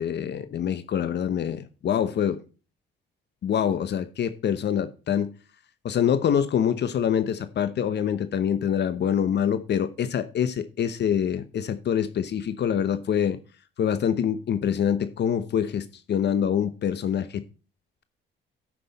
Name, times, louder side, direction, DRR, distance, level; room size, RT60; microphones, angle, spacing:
voice 1, 0.0-2.4 3.4-5.3 5.8-13.4 13.8-17.4, left 8 dB, 60° left, 0.9 m, -25 dB
13.5 x 6.2 x 4.1 m
cardioid pair, 90°, 20 cm